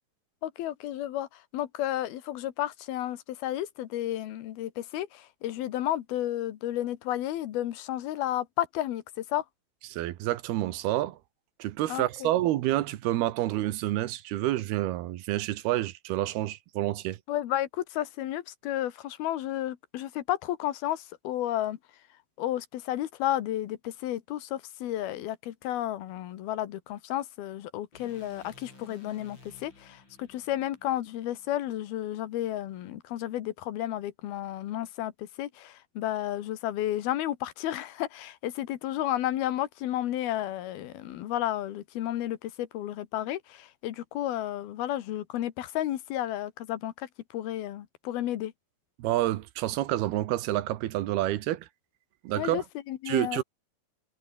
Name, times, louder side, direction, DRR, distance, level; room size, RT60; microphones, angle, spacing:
voice 1, 0.4-1.3 1.5-9.4 11.9-12.3 17.3-21.8 22.4-47.1 47.3-48.5 52.4-53.4, left 13 dB, 80° left, 3.3 m, -32 dB
voice 2, 9.9-11.2 11.6-17.2 49.0-51.7 52.2-52.6 53.1-53.4, right 15 dB, 85° right, 3.1 m, -28 dB
sound 1, 27.9-32.1, left 3 dB, 30° left, 6.6 m, -55 dB
omnidirectional pair, 4.4 m